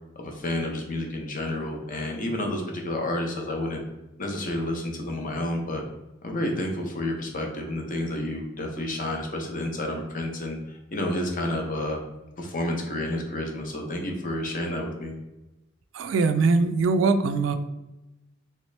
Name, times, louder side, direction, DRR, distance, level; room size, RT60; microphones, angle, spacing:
voice 1, 0.2-3.8 4.2-5.8 6.2-12.0 12.4-15.1, left 1 dB, 45° left, 2 dB, 0.7 m, -30 dB
voice 2, 15.9-17.6, right 4 dB, 80° right, 10 dB, 0.3 m, -22 dB
3.3 x 2.9 x 3.2 m, 0.98 s
head